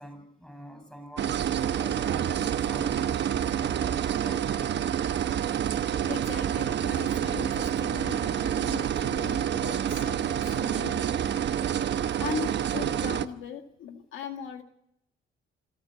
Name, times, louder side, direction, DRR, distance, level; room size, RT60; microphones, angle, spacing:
voice 1, 0.0-1.4 1.7-3.2 3.6-5.2, equal, 5° left, 10 dB, 7.6 m, -45 dB
sound 1, 1.2-13.3, right 9 dB, 60° right, 1.1 m, -28 dB
voice 2, 6.1-11.0 12.2-14.6, left 8 dB, 80° left, 5 dB, 1.9 m, -39 dB
27.0 x 12.5 x 9.3 m, 0.77 s
cardioid pair, 90°, 20 cm